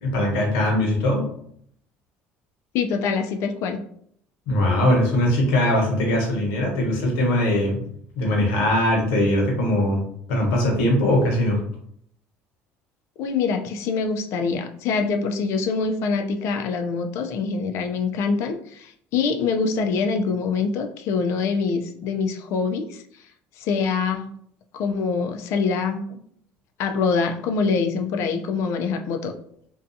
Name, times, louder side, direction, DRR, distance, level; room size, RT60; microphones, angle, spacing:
voice 1, 0.0-1.2 4.5-7.9 8.2-10.0 10.3-11.6, left 1 dB, 85° left, 0 dB, 0.9 m, -21 dB
voice 2, 2.7-3.8 13.2-23.0 23.6-24.3 24.7-26.2 26.8-29.4, left 5 dB, 65° left, 6 dB, 0.4 m, -24 dB
2.6 x 2.3 x 2.6 m, 0.66 s
cardioid pair, 110°, 5 cm